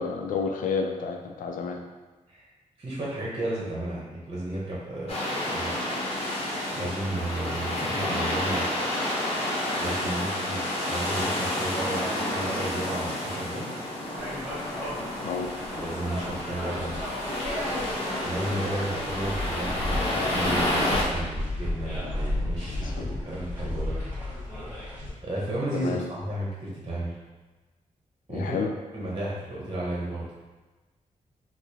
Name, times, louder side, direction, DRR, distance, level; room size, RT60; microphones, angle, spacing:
voice 1, 0.0-1.8 15.2-15.5 22.7-23.1 25.7-26.0 28.3-28.7, left 5 dB, 85° left, 3 dB, 0.4 m, -30 dB
voice 2, 2.8-5.7 6.7-8.6 9.8-13.7 15.7-17.0 18.2-24.0 25.2-27.1 28.3-30.3, right 1 dB, 35° right, -5 dB, 0.8 m, -33 dB
sound 1, 5.1-21.0, left 1 dB, 45° left, 1.0 m, -30 dB
sound 2, 14.2-25.1, left 1 dB, 10° right, 1.3 m, -34 dB
4.6 x 2.0 x 2.8 m, 1.2 s
wide cardioid pair, 105°, 14 cm